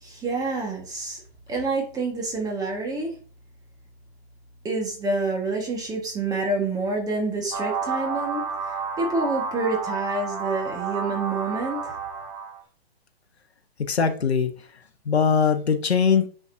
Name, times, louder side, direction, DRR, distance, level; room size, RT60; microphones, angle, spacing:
voice 1, 0.0-1.2 1.5-3.1 4.6-11.9, right 3 dB, 10° right, 1.7 m, -28 dB
sound 1, 7.5-12.6, right 5 dB, 40° right, 1.6 m, -30 dB
voice 2, 13.9-14.5 15.0-16.3, left 6 dB, 85° left, 1.4 m, -21 dB
9.9 x 5.3 x 2.8 m
hypercardioid pair, 140°, 31 cm